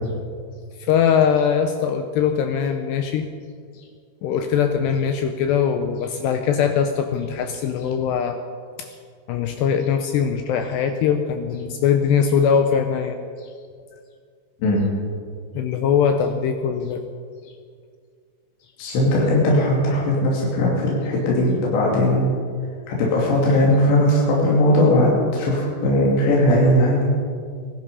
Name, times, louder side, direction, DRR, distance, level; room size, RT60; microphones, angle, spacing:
voice 1, 0.8-3.3 3.7-3.9 4.2-8.4 8.8-9.0 9.3-13.5 15.5-17.0, left 7 dB, 85° left, 6 dB, 2.4 m, -21 dB
voice 2, 18.8-22.3 22.9-27.1, left 1 dB, 65° left, -4 dB, 4.7 m, -18 dB
19.0 x 12.0 x 5.5 m, 2.1 s
omnidirectional pair, 5.7 m